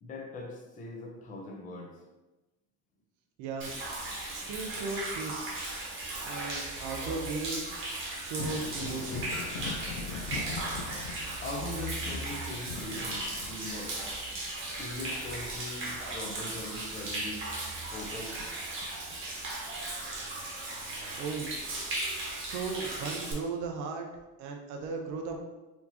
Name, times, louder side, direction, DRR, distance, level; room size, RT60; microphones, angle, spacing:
voice 1, 0.0-1.9 11.4-14.0 14.8-17.4 17.9-18.4, left 2 dB, 25° left, 0 dB, 0.6 m, -41 dB
voice 2, 3.4-3.7 4.3-5.6 6.2-7.8 8.2-9.5 21.1-21.5 22.4-24.1 24.4-25.4, right 4 dB, 70° right, 2 dB, 0.6 m, -36 dB
Human voice / Rain / Stream, 3.6-23.3, right 2 dB, 40° right, 1.1 m, -37 dB
Thunder, 8.2-17.5 17.9-19.1 20.7-20.8 21.6-21.7, left 5 dB, 75° left, 0.5 m, -42 dB
4.4 x 2.8 x 2.8 m, 1.1 s
cardioid pair, 145°, 32 cm